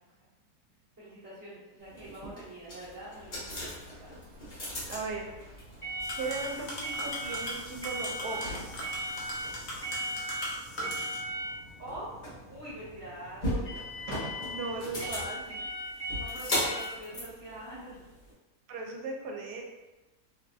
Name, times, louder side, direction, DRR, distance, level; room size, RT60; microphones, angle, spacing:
voice 1, 1.0-4.1 11.8-12.1 12.5-13.8 16.2-18.0, right 1 dB, 15° right, -11 dB, 1.0 m, -45 dB
sound 1, 1.9-18.3, equal, 40° left, 0.8 m, -37 dB
sound 2, 3.1-9.8, equal, 65° right, 1.3 m, -50 dB
voice 2, 4.8-5.3 6.1-8.5 14.1-15.7 18.7-19.6, right 3 dB, 85° right, 1 dB, 1.1 m, -37 dB
sound 3, 6.0-11.2, left 1 dB, 80° left, 0.4 m, -40 dB
2.7 x 2.6 x 2.3 m, 1.1 s
omnidirectional pair, 1.7 m